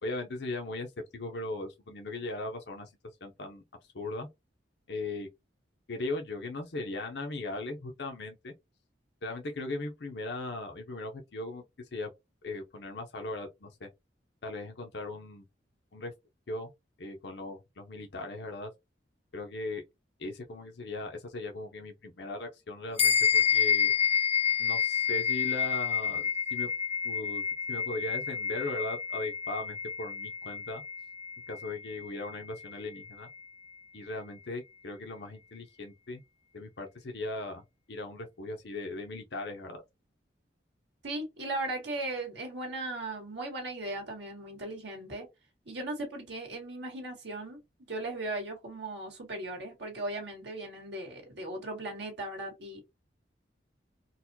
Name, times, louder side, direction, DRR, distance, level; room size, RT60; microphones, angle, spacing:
voice 1, 0.0-2.9 3.2-3.6 3.9-4.3 4.9-5.3 5.9-8.5 9.2-12.1 12.4-13.9 14.4-15.4 15.9-16.1 16.5-16.7 17.0-18.7 19.3-19.8 20.2-23.9 24.6-26.7 27.0-30.8 31.5-33.3 33.9-36.2 36.5-39.8, left 2 dB, 65° left, 0.7 m, -38 dB
sound 1, 23.0-32.7, left 7 dB, 35° left, 0.9 m, -29 dB
voice 2, 41.0-45.3 45.6-47.6 47.9-52.8, right 2 dB, 75° right, 1.6 m, -37 dB
4.0 x 2.2 x 2.7 m
head